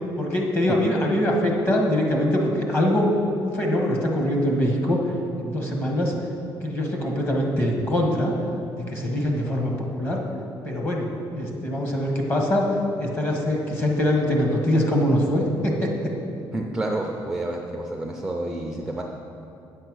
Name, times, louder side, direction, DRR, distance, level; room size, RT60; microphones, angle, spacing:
voice 1, 0.2-3.1 3.4-5.0 5.4-6.1 6.6-8.3 8.7-10.2 10.6-11.1 11.3-12.7 13.0-15.9, left 1 dB, 25° left, 0 dB, 1.4 m, -23 dB
voice 2, 16.5-19.0, right 1 dB, 5° right, 1 dB, 0.5 m, -29 dB
9.2 x 6.7 x 6.2 m, 2.7 s
cardioid pair, 155°, 9 cm